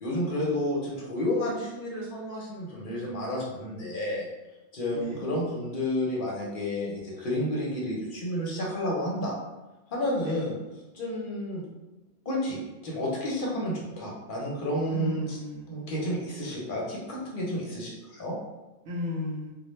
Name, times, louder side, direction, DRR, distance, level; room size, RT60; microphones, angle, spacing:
voice 1, 0.0-4.3 4.7-9.3 9.9-10.5 10.9-11.6 12.3-15.4 15.7-18.3, left 1 dB, 55° left, -4 dB, 0.7 m, -31 dB
voice 2, 4.9-5.3 10.2-10.5 14.9-16.0 18.8-19.5, left 3 dB, 80° right, -1 dB, 0.9 m, -34 dB
2.2 x 2.1 x 3.0 m, 1.1 s
omnidirectional pair, 1.2 m